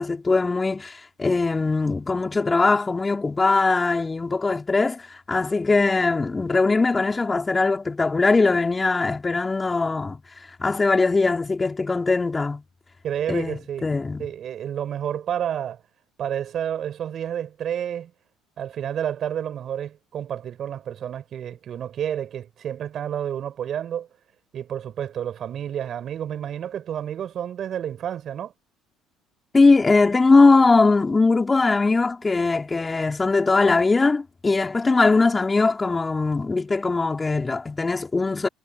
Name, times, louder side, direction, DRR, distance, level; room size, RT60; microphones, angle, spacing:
voice 1, 0.0-10.2 10.6-12.6 13.3-14.3 29.5-38.5, left 3 dB, 25° left, 5.2 m, -20 dB
voice 2, 13.0-13.8 14.2-15.8 16.2-18.1 18.6-24.1 24.5-28.5, right 9 dB, 50° right, 6.1 m, -30 dB
hypercardioid pair, 60°, 0 cm